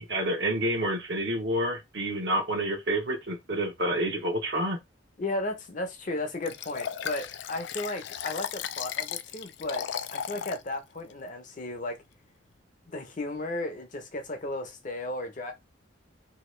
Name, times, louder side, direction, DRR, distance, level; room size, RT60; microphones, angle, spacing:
voice 1, 0.0-4.8, right 1 dB, 60° right, 0.9 m, -28 dB
voice 2, 5.2-12.0 12.9-15.5, left 2 dB, 40° left, 0.7 m, -34 dB
Liquid, 6.5-10.6 11.1-11.2, left 8 dB, 60° left, 0.3 m, -35 dB
2.9 x 2.8 x 3.1 m
head